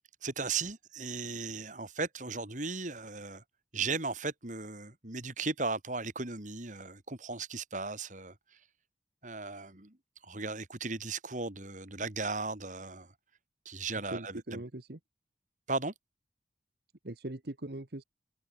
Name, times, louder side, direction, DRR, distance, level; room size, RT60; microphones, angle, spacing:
voice 1, 0.2-3.4 3.7-8.3 9.2-9.9 10.2-13.1 13.6-14.6 15.7-15.9, right 4 dB, 45° right, 2.9 m, -36 dB
voice 2, 14.1-15.0 17.0-18.0, right 1 dB, 60° right, 1.4 m, -40 dB
head